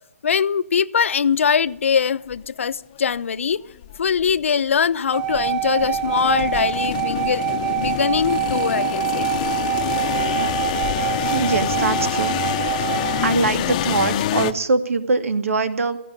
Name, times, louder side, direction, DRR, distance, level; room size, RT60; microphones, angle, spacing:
voice 1, 0.2-3.6 4.0-9.3, left 7 dB, 65° left, 14 dB, 0.9 m, -22 dB
sound 1, 2.3-2.4 3.1-3.2 3.8-4.4 5.1-14.5, left 11 dB, 30° left, 0.9 m, -26 dB
sound 2, 5.1-13.4, right 11 dB, 25° right, 4.0 m, -25 dB
voice 2, 11.0-12.4 13.2-16.0, right 4 dB, 75° right, 9 dB, 2.4 m, -22 dB
17.0 x 16.5 x 9.8 m, 0.80 s
hypercardioid pair, 165°, 7 cm